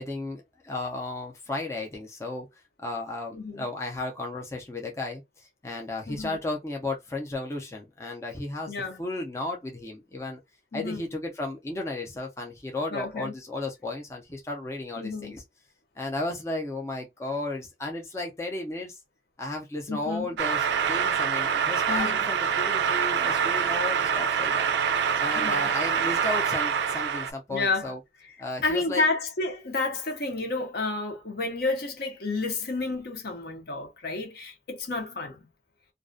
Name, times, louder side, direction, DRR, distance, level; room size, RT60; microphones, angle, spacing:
voice 1, 0.0-2.5 2.8-8.7 9.0-10.4 10.7-15.4 16.0-19.0 19.4-24.7 25.2-28.0 28.4-29.0, left 2 dB, 15° left, 0.4 m, -34 dB
voice 2, 3.3-3.6 6.1-6.4 8.7-9.0 10.7-11.0 12.9-13.3 15.0-15.3 19.9-20.3 21.9-22.2 25.3-25.7 27.5-28.0 28.6-35.5, left 3 dB, 60° left, 0.7 m, -30 dB
sound 1, 20.4-27.3, right 7 dB, 80° right, 0.3 m, -25 dB
2.3 x 2.1 x 2.5 m
head